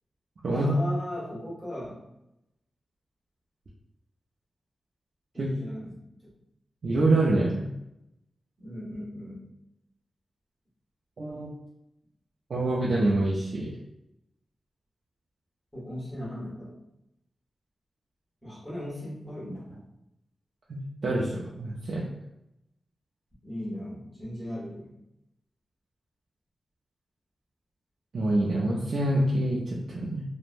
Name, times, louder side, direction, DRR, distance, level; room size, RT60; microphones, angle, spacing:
voice 1, 0.5-2.1 5.3-6.0 8.6-9.5 11.3-11.4 15.7-16.7 18.4-19.8 23.4-24.9, left 1 dB, ahead, -7 dB, 1.2 m, -37 dB
voice 2, 6.8-7.7 11.2-11.5 12.5-13.7 20.7-22.0 28.1-30.2, right 2 dB, 60° right, -5 dB, 0.4 m, -26 dB
3.2 x 2.1 x 2.5 m, 0.85 s
wide cardioid pair, 170°, 0 cm